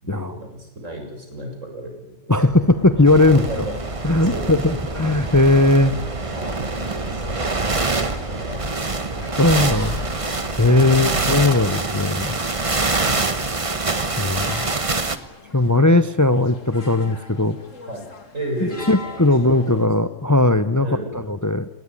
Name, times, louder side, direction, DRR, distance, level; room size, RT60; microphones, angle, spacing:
voice 1, 0.0-2.4 3.3-3.8 4.2-4.5 4.9-5.0 6.0-8.9 10.6-11.2 12.8-13.5 17.9-19.2 19.5-19.9 20.8-21.2, right 1 dB, 85° right, 3 dB, 7.2 m, -34 dB
voice 2, 2.3-3.5 4.0-5.9 9.4-10.0 10.6-12.4 14.2-14.7 15.5-17.6 18.9-20.9 21.1-21.7, left 2 dB, 15° left, 13 dB, 0.8 m, -18 dB
sound 1, 2.5-11.9, equal, 55° right, 8.1 m, -36 dB
sound 2, 3.0-15.2, right 3 dB, 25° right, 1.3 m, -25 dB
sound 3, 6.8-19.9, left 4 dB, 85° left, 2.8 m, -44 dB
30.0 x 18.5 x 9.8 m, 0.98 s
omnidirectional pair, 1.3 m